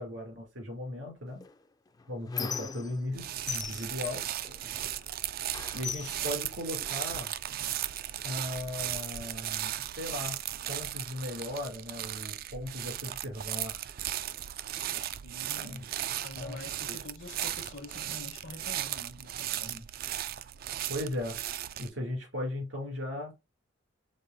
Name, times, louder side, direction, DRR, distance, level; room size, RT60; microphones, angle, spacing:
voice 1, 0.0-1.4 2.1-4.2 5.7-7.3 8.2-10.4 10.7-13.9 15.5-15.8 16.4-17.0 20.9-21.4 21.8-23.3, left 1 dB, 80° right, 2.7 m, -37 dB
Squeak, 1.4-3.2 3.5-5.1 5.5-7.2 8.0-8.1 8.5-9.5, left 6 dB, 20° left, 0.4 m, -40 dB
sound 1, 3.1-21.9, right 12 dB, 50° right, 0.3 m, -36 dB
voice 2, 4.4-4.8 15.2-15.9 16.2-19.8, left 2 dB, 70° left, 1.1 m, -46 dB
5.3 x 3.8 x 2.6 m
head